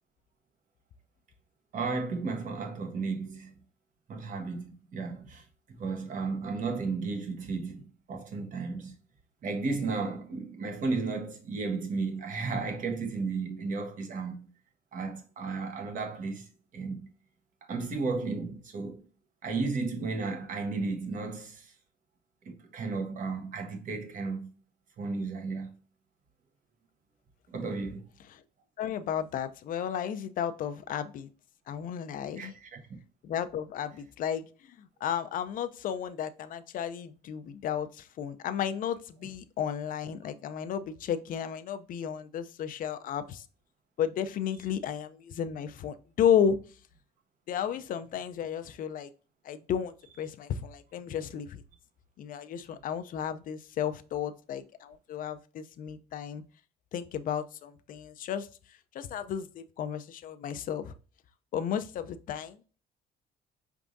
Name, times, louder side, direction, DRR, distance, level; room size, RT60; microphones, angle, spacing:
voice 1, 1.7-3.5 4.1-8.9 9.4-14.5 14.9-17.1 17.7-19.0 19.4-21.7 22.4-24.5 25.0-25.8 27.5-28.1 32.4-33.0, right 4 dB, 50° right, 1.1 m, -34 dB
voice 2, 28.8-31.3 31.7-32.5 33.2-43.4 44.0-46.6 47.5-49.1 49.4-51.6 52.2-56.4 56.9-58.5 58.9-60.9 61.5-62.6, left 8 dB, 55° left, 0.5 m, -33 dB
4.9 x 3.5 x 2.6 m
cardioid pair, 110°, 17 cm